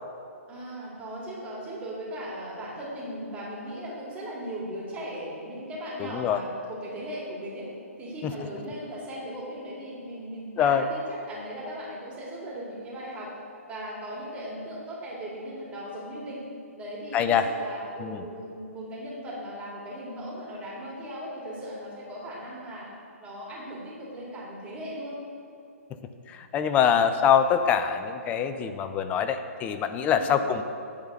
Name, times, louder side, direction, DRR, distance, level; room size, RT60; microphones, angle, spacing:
voice 1, 0.5-7.7 8.0-13.3 13.7-16.4 16.8-22.9 23.2-25.2 30.0-30.4, equal, 15° right, -5 dB, 2.2 m, -38 dB
voice 2, 6.0-6.4 8.2-8.3 10.6-10.9 17.1-17.4 18.0-18.2 26.3-30.6, left 8 dB, 20° left, 9 dB, 0.4 m, -24 dB
9.8 x 3.9 x 6.7 m, 2.6 s
hypercardioid pair, 140°, 8 cm